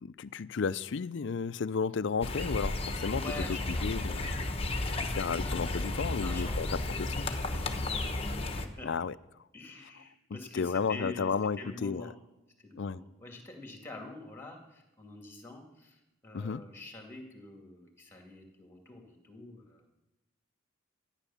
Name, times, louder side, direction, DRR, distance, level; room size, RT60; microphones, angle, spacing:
voice 1, 0.0-3.2 3.7-4.2 5.0-7.3 8.8-9.1 10.5-12.1 12.8-13.0 16.3-16.6, left 5 dB, 65° left, 0.4 m, -33 dB
sound 1, 2.2-8.7, left 2 dB, 30° left, 1.1 m, -33 dB
voice 2, 3.1-4.0 6.2-6.8 7.2-8.0 8.5-8.9 9.5-12.1 12.6-20.0, left 2 dB, 10° left, 2.4 m, -46 dB
13.5 x 10.0 x 7.2 m
head